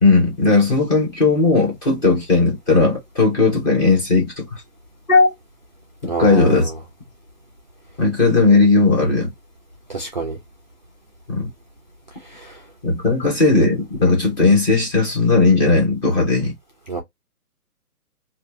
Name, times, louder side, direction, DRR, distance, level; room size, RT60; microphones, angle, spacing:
voice 1, 0.0-4.5 5.1-5.3 6.0-6.7 8.0-9.3 11.3-11.5 12.8-16.5, left 3 dB, 15° left, 0.8 m, -16 dB
voice 2, 6.1-6.7 9.9-10.4 12.3-12.6 16.9-17.0, right 3 dB, 30° right, 0.4 m, -27 dB
2.8 x 2.4 x 2.5 m
hypercardioid pair, 155°, 46 cm